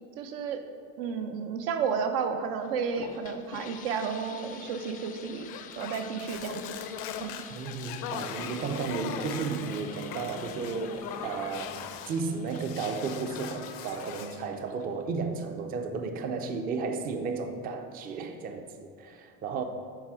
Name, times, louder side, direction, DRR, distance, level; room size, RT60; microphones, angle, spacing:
voice 1, 0.2-0.6 1.0-6.7 7.2-7.4, right 6 dB, 80° right, 7 dB, 0.8 m, -32 dB
sound 1, 2.6-15.1, left 7 dB, 30° left, 0.4 m, -48 dB
sound 2, 5.5-12.2 12.5-14.4, left 8 dB, 75° left, 0.7 m, -40 dB
voice 2, 7.5-19.6, right 4 dB, 30° right, 6 dB, 0.5 m, -33 dB
9.3 x 3.4 x 6.0 m, 2.2 s
cardioid pair, 155°, 29 cm